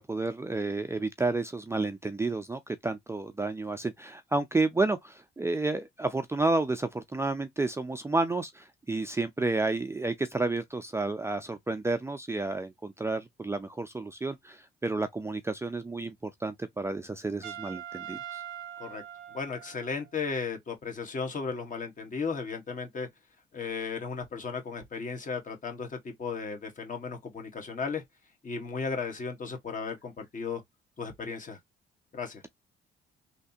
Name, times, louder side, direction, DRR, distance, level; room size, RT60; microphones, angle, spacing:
voice 1, 0.0-18.4, right 3 dB, 15° right, 0.5 m, -31 dB
Trumpet, 17.4-20.1, right 10 dB, 85° right, 0.7 m, -42 dB
voice 2, 19.3-23.1 23.5-28.0 28.4-30.6 31.0-31.6 32.1-32.4, left 5 dB, 40° left, 1.5 m, -35 dB
3.3 x 2.8 x 2.7 m
cardioid pair, 90°, 20 cm